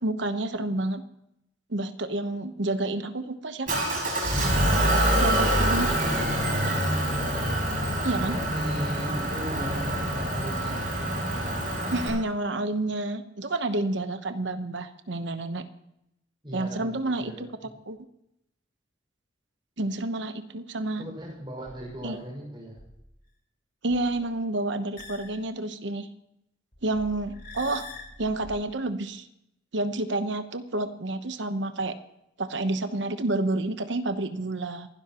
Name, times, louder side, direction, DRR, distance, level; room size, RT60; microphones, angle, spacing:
voice 1, 0.0-1.0 1.7-4.1 5.2-6.0 8.0-8.4 11.9-15.6 16.5-17.5 17.9-18.0 19.8-21.0 22.0-22.2 23.8-26.1 26.8-27.8 28.2-29.3 29.7-32.0 32.4-34.9, right 2 dB, 65° right, 9 dB, 1.0 m, -29 dB
Motor vehicle (road) / Engine, 3.7-12.1, right 1 dB, 45° right, 5.7 m, -26 dB
voice 2, 7.9-10.8 16.4-17.5 21.0-22.8, equal, 25° right, -1 dB, 5.7 m, -38 dB
sound 1, 21.7-22.1 22.8-23.1 23.9-24.2 25.0-25.4 26.7-28.5, left 2 dB, 55° left, 4.3 m, -44 dB
27.5 x 11.5 x 3.0 m, 0.82 s
head